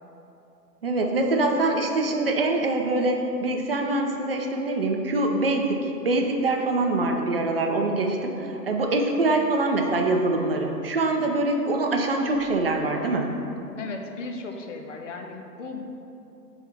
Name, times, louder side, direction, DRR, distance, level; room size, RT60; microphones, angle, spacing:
voice 1, 0.8-5.8 6.0-13.3, right 2 dB, 40° right, 2 dB, 0.5 m, -24 dB
voice 2, 13.8-15.8, left 3 dB, 50° left, 3 dB, 0.7 m, -36 dB
4.7 x 4.3 x 5.7 m, 2.8 s
figure-of-eight pair, 135°, 50 cm